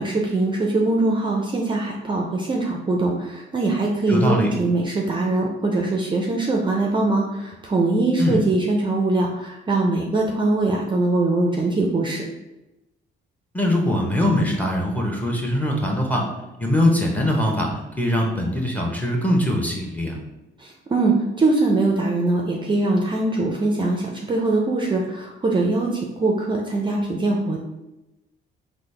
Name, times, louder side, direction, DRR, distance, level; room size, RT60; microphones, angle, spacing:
voice 1, 0.0-12.2 20.6-27.6, right 2 dB, 25° right, 0 dB, 0.4 m, -22 dB
voice 2, 4.1-4.5 8.2-8.4 13.5-16.3 16.6-17.7 18.0-20.2, left 1 dB, 10° left, -1 dB, 0.8 m, -22 dB
3.8 x 2.1 x 3.2 m, 0.98 s
cardioid pair, 90°, 20 cm